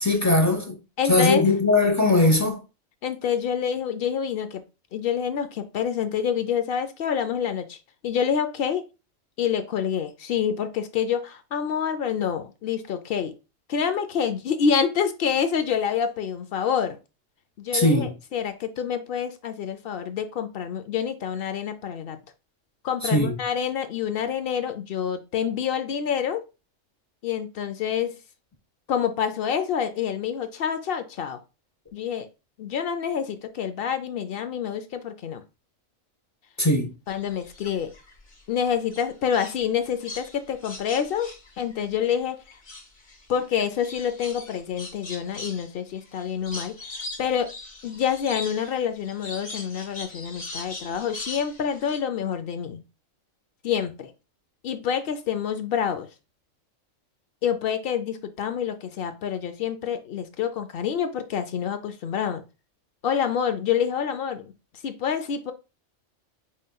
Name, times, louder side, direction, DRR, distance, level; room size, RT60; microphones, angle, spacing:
voice 1, 0.0-0.7 1.1-2.6 17.7-18.1 23.1-23.3 36.6-36.9, left 2 dB, 20° left, 0.5 m, -20 dB
voice 2, 1.0-1.4 3.0-4.6 4.9-7.8 8.0-8.8 9.4-13.3 13.7-17.0 17.6-22.2 22.8-26.4 27.2-28.2 28.9-31.4 31.9-32.3 32.6-35.4 37.1-37.9 38.5-42.4 43.3-46.8 47.2-47.5 47.8-52.8 53.6-54.1 54.6-56.1 57.4-62.4 63.0-64.5 64.8-65.5, left 8 dB, 60° left, 0.6 m, -27 dB
sound 1, 37.1-38.4 38.9-42.2 42.5-52.0, left 2 dB, 40° left, 1.1 m, -40 dB
5.1 x 3.6 x 2.2 m
omnidirectional pair, 1.4 m